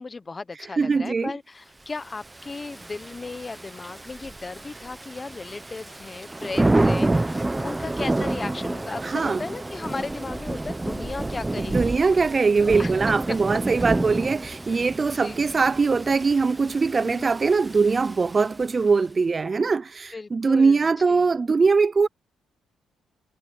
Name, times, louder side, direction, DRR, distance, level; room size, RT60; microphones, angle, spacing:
voice 1, 0.0-12.0 12.6-12.9 13.3-13.6 15.1-15.4 17.0-17.3 20.1-21.3, left 3 dB, 25° left, 1.1 m, -36 dB
voice 2, 0.8-1.3 9.0-9.4 11.6-22.1, right 4 dB, 30° right, 0.4 m, -22 dB
Thunder / Rain, 2.2-18.8, right 2 dB, 15° right, 1.1 m, -29 dB
cardioid pair, 90°, 0 cm